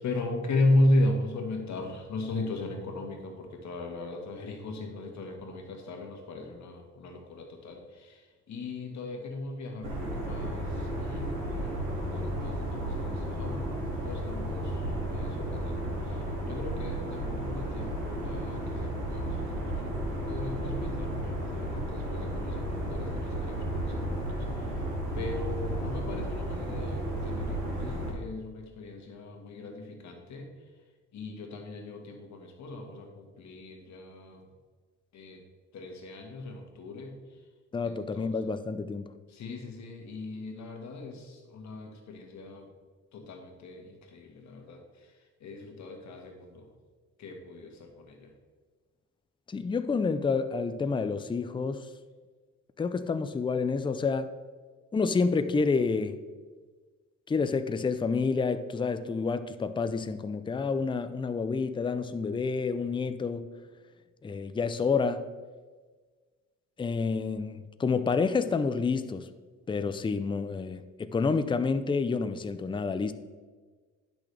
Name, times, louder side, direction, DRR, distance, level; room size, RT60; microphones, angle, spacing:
voice 1, 0.0-7.8 8.5-10.7 11.0-14.7 15.1-15.9 16.5-19.9 20.3-24.0 25.2-30.5 31.1-34.4 35.1-35.4 35.7-37.2 38.1-38.3 39.3-42.7 43.1-44.8 45.4-46.7 47.2-48.3, left 1 dB, 65° left, 1.6 m, -35 dB
sound 1, 9.8-28.1, right 1 dB, 75° right, 2.5 m, -33 dB
voice 2, 37.7-39.1 49.5-51.9 52.8-54.3 54.9-56.2 57.3-63.5 64.2-65.3 66.8-69.3 69.7-73.1, left 4 dB, 15° left, 0.4 m, -29 dB
10.5 x 6.1 x 3.4 m
cardioid pair, 90°, 30 cm